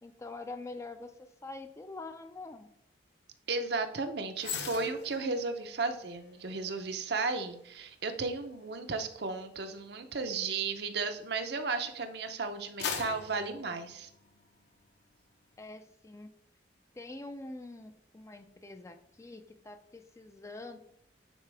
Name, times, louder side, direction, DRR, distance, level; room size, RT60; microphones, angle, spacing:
voice 1, 0.0-2.7 15.6-16.3 16.9-20.8, left 2 dB, 15° left, 8 dB, 0.4 m, -45 dB
voice 2, 3.5-14.1, right 4 dB, 55° right, 7 dB, 0.7 m, -34 dB
sound 1, 4.4-11.8 12.3-14.6 15.0-15.2, left 6 dB, 60° left, 0.9 m, -44 dB
9.1 x 4.5 x 3.4 m, 0.74 s
head